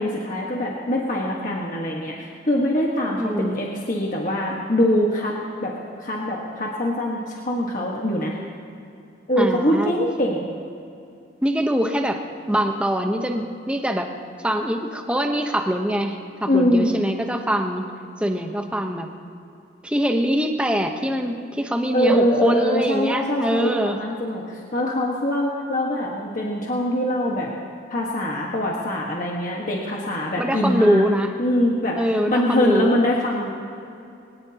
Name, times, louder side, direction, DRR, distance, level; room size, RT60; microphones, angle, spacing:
voice 1, 0.0-5.3 5.6-5.7 6.0-8.4 9.3-10.5 16.5-16.9 21.9-23.7 23.9-27.5 27.9-31.1 31.4-32.0 32.3-33.5, left 1 dB, 45° left, -2 dB, 1.5 m, -23 dB
voice 2, 3.2-3.6 9.4-9.9 11.4-12.2 12.5-14.1 14.4-17.9 18.2-19.1 19.8-24.0 30.4-31.3 32.0-33.0, equal, 5° right, 4 dB, 0.9 m, -23 dB
21.5 x 19.5 x 2.9 m, 2.6 s
head